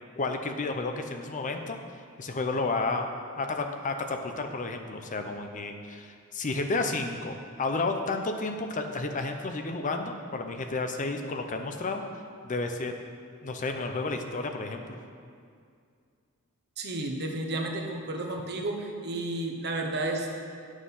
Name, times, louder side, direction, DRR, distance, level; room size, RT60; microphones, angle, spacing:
voice 1, 0.2-1.8 2.2-3.1 3.4-12.0 12.4-12.9 13.4-15.0, left 3 dB, 35° left, 5 dB, 0.6 m, -31 dB
voice 2, 16.8-20.3, right 2 dB, 50° right, 2 dB, 1.1 m, -32 dB
9.6 x 6.3 x 5.5 m, 2.2 s
head